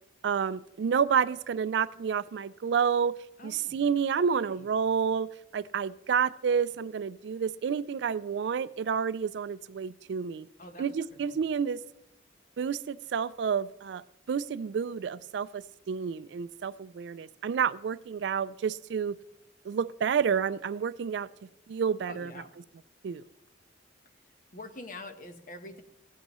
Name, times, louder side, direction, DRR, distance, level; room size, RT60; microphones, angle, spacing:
voice 1, 0.2-3.2 3.4-5.3 5.5-10.5 10.8-11.8 12.6-14.0 14.3-19.2 19.7-21.3 21.7-22.3 23.0-23.2, right 6 dB, 65° right, 17 dB, 0.3 m, -29 dB
voice 2, 3.4-3.8 4.3-4.7 10.6-11.4 22.0-22.5 24.5-25.8, left 1 dB, 45° left, 7 dB, 1.0 m, -46 dB
16.0 x 8.2 x 3.0 m, 0.87 s
head